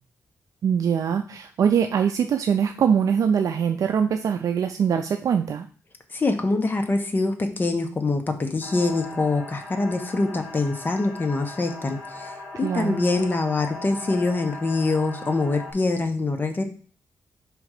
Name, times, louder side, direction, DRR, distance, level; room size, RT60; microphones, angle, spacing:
voice 1, 0.6-5.7 12.6-13.0, right 7 dB, 70° right, 6 dB, 0.4 m, -23 dB
voice 2, 6.1-16.6, left 3 dB, 35° left, 5 dB, 1.0 m, -24 dB
sound 1, 8.6-15.7, left 3 dB, 5° right, 2.7 m, -39 dB
5.1 x 3.8 x 4.8 m, 0.42 s
cardioid pair, 100°, 6 cm